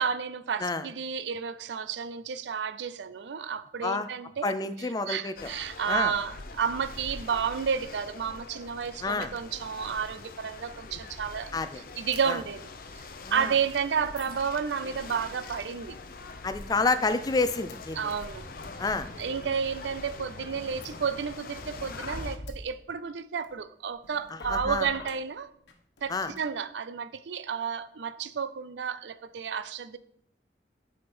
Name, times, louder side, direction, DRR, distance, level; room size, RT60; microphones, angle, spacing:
voice 1, 0.0-4.5 4.8-12.7 13.0-16.0 18.0-18.5 19.2-25.5 26.0-30.0, right 6 dB, 85° right, 0.5 m, -31 dB
voice 2, 4.4-5.5 5.9-6.1 9.0-9.3 11.5-11.8 12.3-12.4 13.2-13.5 16.4-18.1 18.8-19.1 24.5-24.9 26.1-26.3, left 3 dB, 20° left, 0.4 m, -29 dB
sound 1, 5.4-22.4, left 3 dB, 55° left, 0.6 m, -44 dB
sound 2, 11.6-11.7 12.1-12.2 12.4-12.9 13.4-13.5 14.0-15.2 15.6-15.8 16.1-16.2 16.5-17.1 17.7-17.8 18.1-19.2 19.7-20.2 20.8-22.7 23.4-23.5 23.9-25.1 25.7-25.8 26.0-26.4, left 1 dB, 80° left, 1.1 m, -44 dB
7.8 x 5.1 x 4.3 m
head